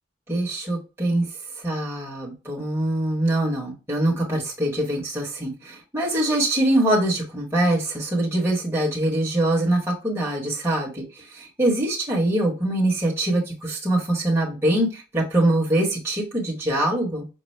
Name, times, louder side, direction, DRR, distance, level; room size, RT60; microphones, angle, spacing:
voice 1, 0.3-1.3 1.6-17.3, right 1 dB, 10° right, -4 dB, 1.0 m, -23 dB
5.3 x 2.0 x 3.1 m, 0.31 s
head